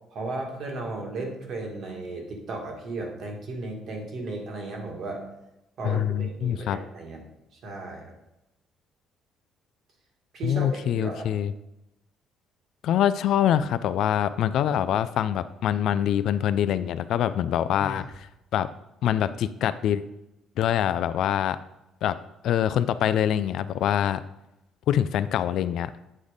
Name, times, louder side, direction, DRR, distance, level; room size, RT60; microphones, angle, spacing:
voice 1, 0.1-5.2 5.8-7.2 7.5-8.1 10.3-11.3, right 2 dB, 50° right, 1 dB, 1.6 m, -35 dB
voice 2, 5.8-6.8 10.4-11.5 12.8-18.3 18.5-18.7 19.0-20.0 20.6-21.6 22.0-22.2 22.4-24.2 24.9-26.1, left 10 dB, 60° left, 14 dB, 0.3 m, -24 dB
Sigh, 17.8-18.3, right 2 dB, 20° right, 0.5 m, -39 dB
8.5 x 4.1 x 5.0 m, 0.90 s
cardioid pair, 160°, 0 cm